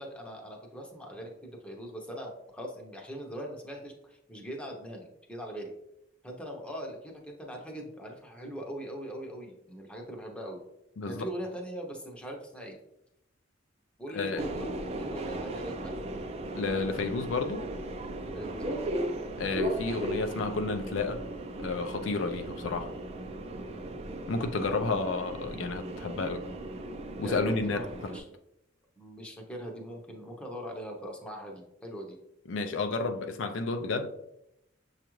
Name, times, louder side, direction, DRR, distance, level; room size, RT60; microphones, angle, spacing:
voice 1, 0.0-5.7 6.2-10.6 11.1-12.8 14.0-16.0 18.3-18.8 23.5-23.9 24.6-25.0 27.2-28.2 29.0-32.2, equal, 5° left, 0.7 m, -41 dB
voice 2, 14.1-14.5 16.5-17.7 19.4-21.2 21.6-22.9 24.3-26.5 27.2-28.2 32.5-34.1, left 3 dB, 75° left, 0.4 m, -31 dB
Subway metro underground, 14.4-28.2, right 1 dB, 35° right, 0.4 m, -37 dB
6.9 x 2.4 x 3.0 m
head